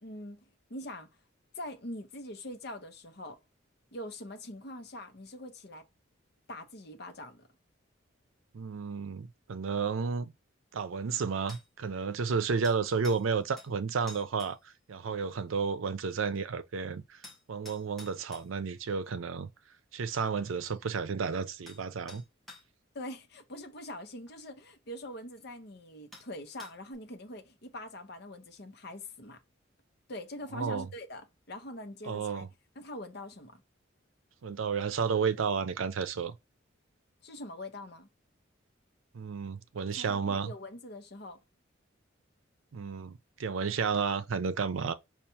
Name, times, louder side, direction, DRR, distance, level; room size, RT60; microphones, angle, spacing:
voice 1, 0.0-1.1 1.5-3.4 3.9-5.9 6.5-7.5 22.9-29.4 30.1-32.5 32.8-33.6 37.2-38.1 40.0-41.4, left 1 dB, 55° left, 0.9 m, -43 dB
voice 2, 8.5-10.3 10.7-17.2 17.5-19.5 19.9-22.2 30.5-30.9 32.0-32.5 34.4-36.4 39.1-40.5 42.7-44.9, right 5 dB, 90° right, 0.5 m, -32 dB
sound 1, 11.5-11.7 12.6-13.3 13.6-13.7 14.1-14.5 17.2-18.5 21.1-21.2 21.7-21.8 22.1-22.6 24.3-24.4 25.4-25.5 26.1-26.3 26.6-26.9, left 1 dB, ahead, 0.9 m, -49 dB
5.6 x 2.4 x 2.8 m
head